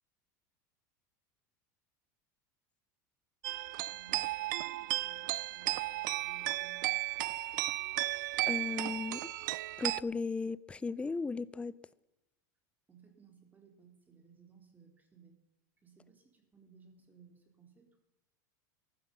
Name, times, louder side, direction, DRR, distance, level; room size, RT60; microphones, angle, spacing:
sound 1, 3.4-10.0, right 17 dB, 75° right, 0.5 m, -34 dB
voice 1, 3.8-7.0 12.9-15.4 15.8-18.0, right 6 dB, 15° right, 3.7 m, -61 dB
voice 2, 8.5-9.3 9.8-11.8, left 4 dB, 10° left, 0.5 m, -36 dB
15.0 x 12.5 x 5.4 m
supercardioid pair, 120°, 10 cm